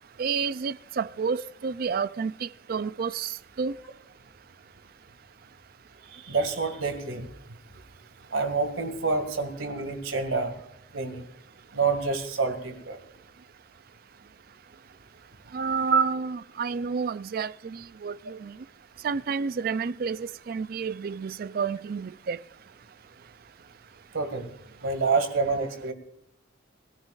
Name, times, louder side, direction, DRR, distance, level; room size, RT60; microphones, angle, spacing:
voice 1, 0.2-3.3 3.6-3.7 15.5-18.5 19.0-22.4, right 5 dB, 45° right, 0.4 m, -30 dB
voice 2, 6.1-7.3 8.3-10.6 10.9-11.3 11.7-13.0 15.9-16.0 24.1-24.5 24.8-25.9, right 4 dB, 80° right, 2.1 m, -27 dB
20.0 x 14.5 x 2.4 m
head